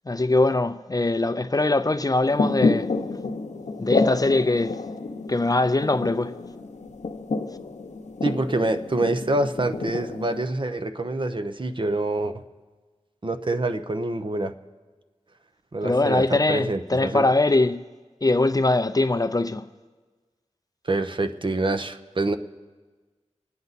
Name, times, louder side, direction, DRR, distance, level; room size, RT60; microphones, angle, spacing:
voice 1, 0.1-2.9 3.8-4.8 5.3-6.4 15.8-17.8 18.2-19.6, left 2 dB, 30° left, 0.5 m, -22 dB
sound 1, 2.2-10.5, left 3 dB, 80° left, 0.8 m, -28 dB
voice 2, 8.2-12.4 13.2-14.5 15.7-17.2 20.8-22.4, right 2 dB, 45° right, 0.7 m, -26 dB
25.5 x 9.4 x 4.1 m
wide cardioid pair, 65°, 12 cm